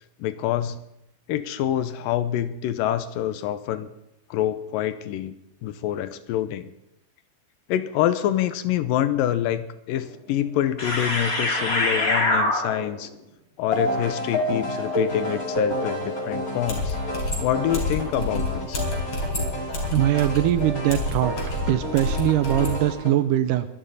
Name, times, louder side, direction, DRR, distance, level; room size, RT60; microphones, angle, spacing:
voice 1, 0.2-0.8 1.3-3.9 4.3-5.3 5.6-6.7 7.7-13.1 13.6-17.0 17.4-18.8, left 11 dB, 80° left, 12 dB, 2.4 m, -26 dB
sound 1, 10.0-10.1 10.8-13.0 13.7-23.1, left 1 dB, 25° left, 2.5 m, -28 dB
sound 2, 16.7-22.8, left 2 dB, 40° left, 4.5 m, -29 dB
voice 2, 19.9-21.3 21.7-23.7, right 13 dB, 80° right, 12 dB, 2.1 m, -21 dB
23.5 x 11.5 x 4.1 m, 0.82 s
omnidirectional pair, 4.1 m